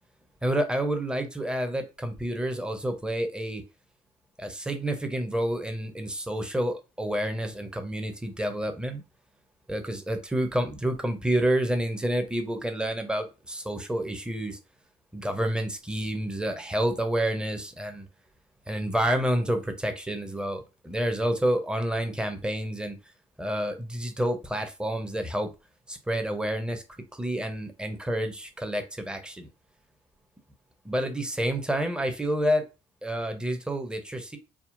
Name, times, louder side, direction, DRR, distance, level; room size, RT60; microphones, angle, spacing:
voice 1, 0.4-3.6 4.4-9.0 9.7-14.6 15.1-18.1 18.7-23.0 23.4-25.5 25.9-26.8 27.1-29.5 30.8-32.6 33.0-34.4, right 1 dB, 5° right, 6 dB, 0.6 m, -29 dB
3.5 x 2.1 x 2.4 m, 0.29 s
figure-of-eight pair, 50°, 18 cm